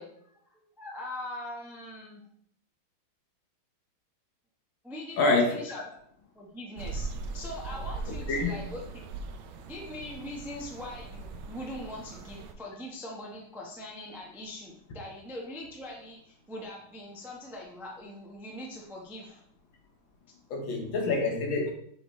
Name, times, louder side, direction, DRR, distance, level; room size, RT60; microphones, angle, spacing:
voice 1, 0.0-2.2 4.8-5.8 6.3-9.0 9.6-19.4, left 1 dB, ahead, -2 dB, 0.5 m, -42 dB
voice 2, 5.2-5.8 8.1-8.6 20.5-21.7, left 3 dB, 70° left, 0 dB, 1.9 m, -27 dB
sound 1, 6.8-12.5, right 4 dB, 80° right, 1.4 m, -40 dB
7.8 x 4.1 x 3.2 m, 0.68 s
omnidirectional pair, 2.3 m